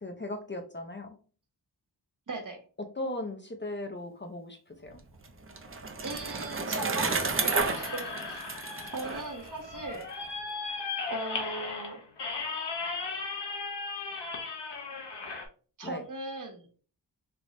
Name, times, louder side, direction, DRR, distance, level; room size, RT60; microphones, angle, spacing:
voice 1, 0.0-1.1 2.8-5.0 15.8-16.0, left 1 dB, 30° left, 4 dB, 0.6 m, -37 dB
voice 2, 2.3-2.6 6.0-8.4 8.9-10.1 11.1-12.0 15.8-16.7, right 3 dB, 50° right, 4 dB, 0.9 m, -38 dB
Bicycle, 4.9-10.0, right 4 dB, 30° right, 0.6 m, -32 dB
sound 1, 7.6-15.5, left 4 dB, 80° left, 0.9 m, -37 dB
3.4 x 3.0 x 2.5 m, 0.39 s
wide cardioid pair, 75°, 41 cm